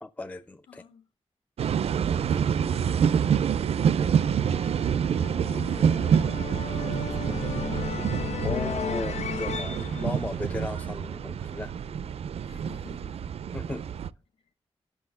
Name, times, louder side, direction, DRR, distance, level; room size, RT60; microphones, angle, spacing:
voice 1, 0.0-0.8 8.4-11.7 13.5-13.8, left 2 dB, 15° left, 0.4 m, -36 dB
voice 2, 0.7-1.0 2.0-3.4 3.9-4.6 5.4-8.0 12.4-13.3, left 6 dB, 50° left, 1.7 m, -51 dB
sound 1, 1.6-14.1, right 8 dB, 65° right, 0.4 m, -27 dB
sound 2, 2.3-11.3, left 6 dB, 85° left, 0.8 m, -36 dB
11.0 x 6.1 x 5.4 m
wide cardioid pair, 170°, 11 cm